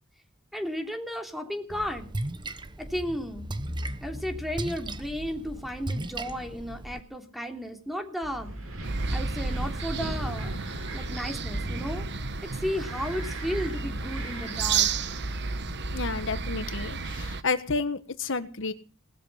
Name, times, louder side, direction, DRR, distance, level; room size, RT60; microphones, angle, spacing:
voice 1, 0.5-2.1 2.8-3.5 4.0-8.5 9.1-10.5 10.9-12.0 12.5-14.9, equal, ahead, 4 dB, 3.1 m, -34 dB
Splash splatter, 1.7-7.0, right 1 dB, 20° right, 1.2 m, -36 dB
Wind, 8.2-16.3, right 1 dB, 80° right, 6.4 m, -38 dB
sound 1, 8.8-17.4, right 5 dB, 55° right, 1.2 m, -32 dB
voice 2, 15.9-18.7, left 4 dB, 60° left, 11 dB, 1.4 m, -30 dB
19.0 x 13.0 x 5.7 m, 0.37 s
head